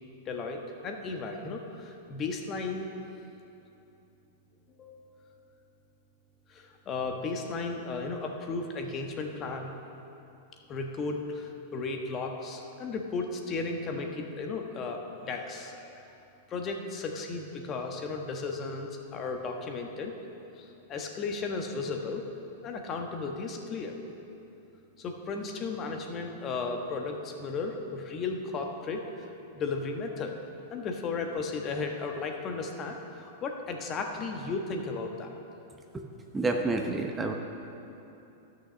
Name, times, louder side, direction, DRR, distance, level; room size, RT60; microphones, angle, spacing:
voice 1, 0.2-2.9 4.8-5.4 6.5-9.7 10.7-16.0 16.5-20.1 20.6-22.3 22.6-23.9 25.0-29.0 29.5-30.3 30.7-35.3, left 4 dB, 35° left, 3 dB, 1.3 m, -35 dB
voice 2, 36.3-37.4, right 3 dB, 15° right, 3 dB, 0.8 m, -29 dB
12.5 x 6.3 x 6.3 m, 2.9 s
hypercardioid pair, 100°, 0 cm